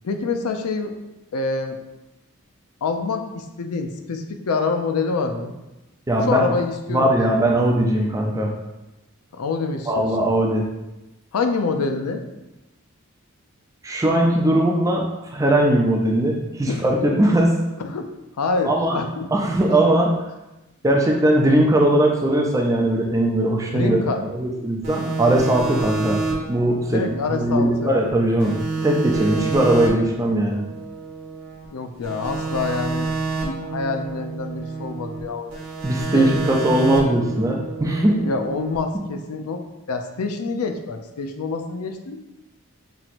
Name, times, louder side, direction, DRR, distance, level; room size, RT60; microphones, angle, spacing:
voice 1, 0.0-1.0 1.3-1.8 2.8-5.5 6.3-7.4 9.3-10.1 11.3-12.2 16.7-16.8 17.2-17.3 17.8-18.1 18.4-19.3 23.7-24.2 26.9-27.9 31.7-33.1 33.4-35.6 36.1-36.6 38.2-39.6 39.9-42.2, left 4 dB, 90° left, 6 dB, 0.5 m, -26 dB
voice 2, 6.1-6.5 6.9-8.6 9.9-10.7 13.8-15.0 15.3-17.6 18.6-19.0 19.3-20.2 20.8-24.0 24.3-30.7 35.8-38.2, right 1 dB, 15° right, 0 dB, 0.4 m, -19 dB
sound 1, 24.8-28.1 28.4-31.6 32.0-35.2 35.5-38.8, right 4 dB, 75° right, 1.2 m, -29 dB
5.7 x 2.9 x 2.5 m, 0.99 s
head